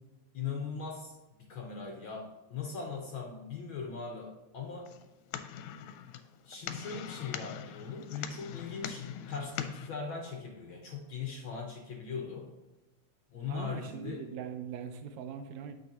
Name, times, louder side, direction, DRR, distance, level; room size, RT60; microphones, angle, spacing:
voice 1, 0.3-4.9 6.4-12.5 13.3-14.2, left 5 dB, 60° left, 0 dB, 1.3 m, -40 dB
sound 1, 4.9-9.9, left 9 dB, 80° left, 1.9 m, -42 dB
voice 2, 13.5-15.7, right 7 dB, 75° right, 8 dB, 1.9 m, -41 dB
9.3 x 6.1 x 2.9 m, 1.1 s
omnidirectional pair, 3.4 m